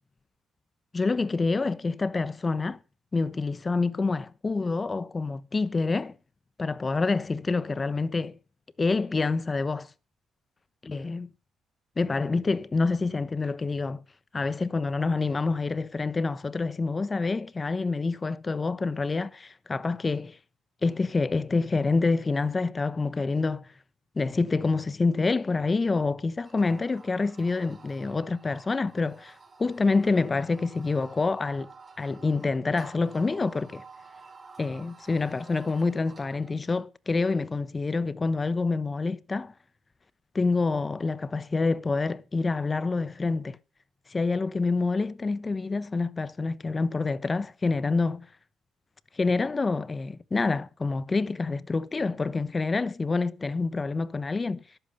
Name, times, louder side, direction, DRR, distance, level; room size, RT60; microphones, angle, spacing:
voice 1, 0.9-2.8 3.1-6.1 6.6-8.4 8.8-9.9 10.8-11.3 12.0-14.0 14.3-20.4 20.8-23.7 24.2-31.7 32.0-33.8 34.6-39.5 40.3-43.6 44.1-48.3 49.2-54.6, left 3 dB, 30° left, 1.0 m, -27 dB
sound 1, 26.4-36.6, right 4 dB, 30° right, 4.5 m, -51 dB
13.5 x 11.5 x 5.5 m
cardioid pair, 90°, 0 cm